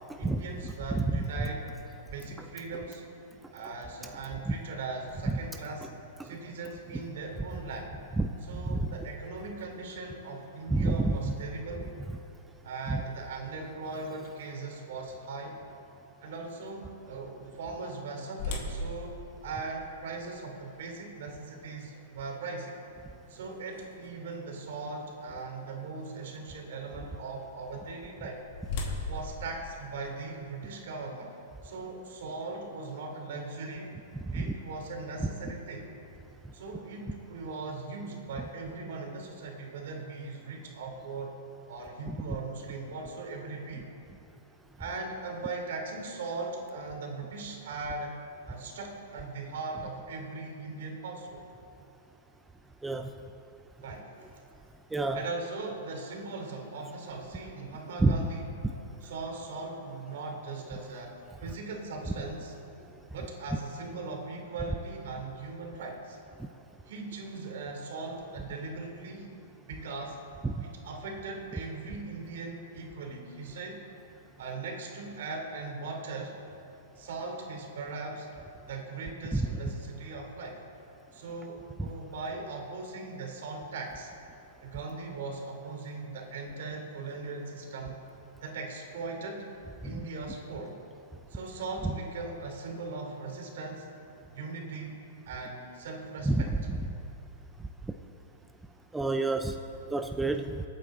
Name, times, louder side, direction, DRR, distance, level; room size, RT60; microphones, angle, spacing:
voice 1, 0.2-1.7 2.1-3.0 3.5-5.9 6.2-7.9 8.4-11.9 12.6-15.6 16.2-19.1 19.4-22.7 23.3-28.4 29.0-31.3 31.6-33.9 34.3-35.9 36.5-41.3 41.7-43.9 44.8-48.2 48.4-51.4 53.8-54.3 55.1-58.5 59.0-62.5 63.1-66.2 66.8-69.3 69.7-70.2 70.6-73.8 74.4-76.3 76.9-78.3 78.7-80.6 81.1-84.1 84.6-88.0 88.4-89.5 89.8-90.8 91.3-93.9 94.3-95.0 95.2-96.5, right 3 dB, 70° right, 2 dB, 3.0 m, -39 dB
voice 2, 10.7-11.2 12.9-13.0 34.3-34.5 42.1-42.2 52.8-53.1 54.9-55.2 58.0-58.2 66.4-66.5 70.4-70.6 79.3-79.4 81.8-81.9 89.9-90.0 96.3-96.8 97.9-98.0 98.9-99.6 99.9-100.6, right 2 dB, 5° right, 6 dB, 0.4 m, -28 dB
sound 1, 18.4-24.3 24.9-25.0 25.6-25.8 27.9-30.5, left 2 dB, 55° left, 2.3 m, -40 dB
25.0 x 9.1 x 3.8 m, 2.8 s
hypercardioid pair, 150°, 0 cm